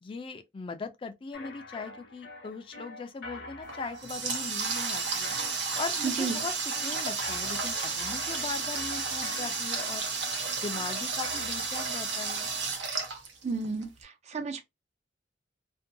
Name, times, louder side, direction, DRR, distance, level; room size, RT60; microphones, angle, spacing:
voice 1, 0.0-5.3 5.8-6.5 6.8-10.0 10.6-12.5, left 4 dB, 30° left, 0.3 m, -39 dB
sound 1, 1.3-12.6, left 2 dB, 65° left, 0.7 m, -45 dB
Water tap faucet, 3.6-13.8, right 5 dB, 85° right, 0.8 m, -32 dB
voice 2, 6.0-6.4 13.4-14.6, right 4 dB, 40° right, 0.4 m, -32 dB
2.6 x 2.2 x 2.5 m
head